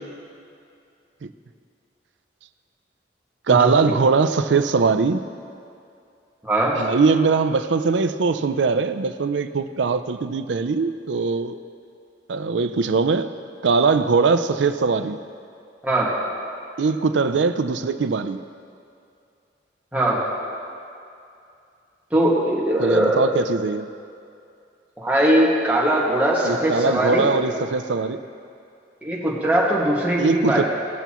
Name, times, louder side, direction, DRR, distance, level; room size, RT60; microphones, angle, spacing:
voice 1, 3.5-5.2 6.8-11.6 12.3-13.3 13.6-15.2 16.8-18.4 22.8-23.9 26.4-28.2 30.2-30.6, right 4 dB, 85° right, 10 dB, 0.5 m, -21 dB
voice 2, 6.4-6.8 15.8-16.1 19.9-20.2 22.1-23.3 25.0-27.3 29.0-30.6, right 1 dB, 10° right, -6 dB, 1.8 m, -20 dB
19.0 x 6.9 x 3.0 m, 2.5 s
head